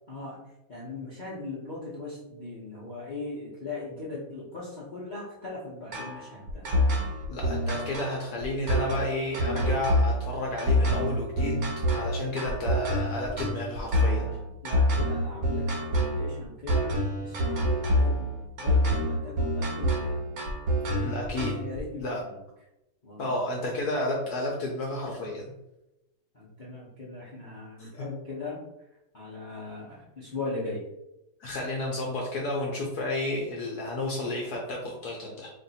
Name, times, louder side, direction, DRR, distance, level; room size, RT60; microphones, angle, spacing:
voice 1, 0.1-0.4 0.7-6.6 14.0-18.3 18.6-20.4 20.8-22.4 23.0-23.3 26.3-28.6 29.1-30.8, left 3 dB, 85° left, -8 dB, 0.4 m, -39 dB
sound 1, 5.9-21.8, equal, 60° right, 0.9 m, -26 dB
voice 2, 7.3-11.6 11.9-14.3 21.0-21.6 22.0-22.2 23.2-25.5 27.8-28.1 31.4-35.5, left 1 dB, 65° left, -1 dB, 1.0 m, -31 dB
3.2 x 2.6 x 4.0 m, 0.92 s
omnidirectional pair, 2.2 m